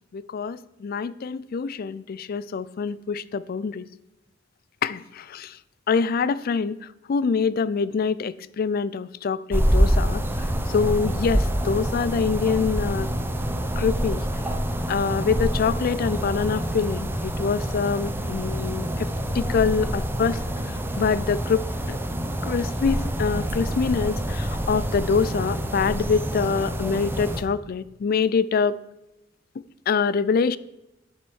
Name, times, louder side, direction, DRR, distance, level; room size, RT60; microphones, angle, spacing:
voice 1, 0.1-3.8 4.8-5.5 5.9-6.8 7.1-10.2 10.7-13.1 13.8-14.2 14.9-18.9 19.3-20.4 21.0-22.0 22.4-28.8 29.9-30.6, left 5 dB, 50° left, 0.4 m, -25 dB
sound 1, 9.5-27.4, equal, 10° right, 0.7 m, -26 dB
7.6 x 7.1 x 6.3 m
head